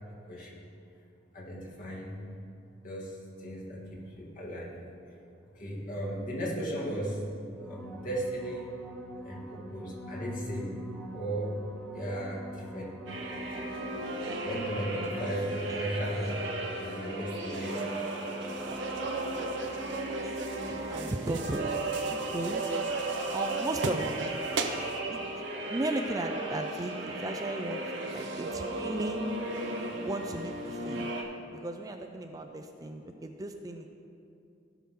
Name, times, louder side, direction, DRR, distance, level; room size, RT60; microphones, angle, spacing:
voice 1, 0.3-0.6 1.3-2.2 2.8-4.8 5.5-7.3 7.6-8.7 9.2-10.8 11.1-11.6 11.9-12.9 14.4-16.3 16.6-17.8, right 1 dB, 45° left, -5 dB, 2.3 m, -36 dB
sound 1, 7.5-16.2 21.5-21.6, equal, ahead, 0.9 m, -45 dB
sound 2, 13.1-31.2, right 2 dB, 90° right, 1.4 m, -36 dB
sound 3, 17.5-25.0, right 3 dB, 70° right, 0.7 m, -37 dB
voice 2, 20.2-21.8 22.1-22.7 23.3-24.5 25.1-25.2 25.7-29.2 30.0-31.1 31.5-33.9, right 2 dB, 20° right, 5 dB, 0.4 m, -36 dB
16.5 x 5.9 x 3.7 m, 2.6 s
head